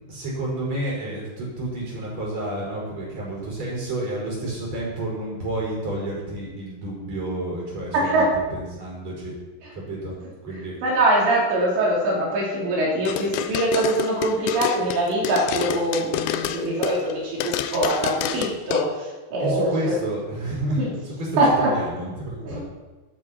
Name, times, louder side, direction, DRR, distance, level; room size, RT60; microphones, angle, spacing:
voice 1, 0.1-9.3 9.7-10.2 10.4-10.7 19.4-22.6, right 1 dB, 40° right, -4 dB, 6.1 m, -30 dB
voice 2, 7.9-8.2 10.8-18.9 19.3-19.9 20.8-20.9 21.4-21.7 22.5-22.6, right 1 dB, 80° right, -5 dB, 6.1 m, -23 dB
sound 1, 13.1-17.1 17.4-18.8, left 10 dB, 80° left, 2.7 m, -28 dB
13.5 x 12.5 x 4.4 m, 1.2 s
omnidirectional pair, 5.0 m